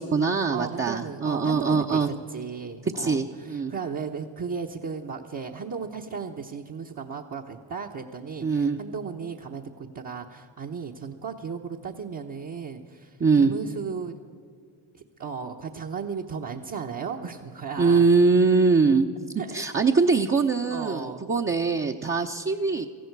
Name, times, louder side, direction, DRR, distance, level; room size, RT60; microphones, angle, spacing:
voice 1, 0.0-2.1 2.9-3.7 8.4-8.8 13.2-13.5 17.8-19.1 19.5-22.9, right 4 dB, 25° right, 2 dB, 0.8 m, -22 dB
voice 2, 0.5-2.0 2.3-14.2 14.9-18.1 19.4-19.6 20.7-21.3, right 6 dB, 45° right, -1 dB, 1.2 m, -35 dB
18.0 x 14.5 x 4.7 m, 2.2 s
supercardioid pair, 60°, 45 cm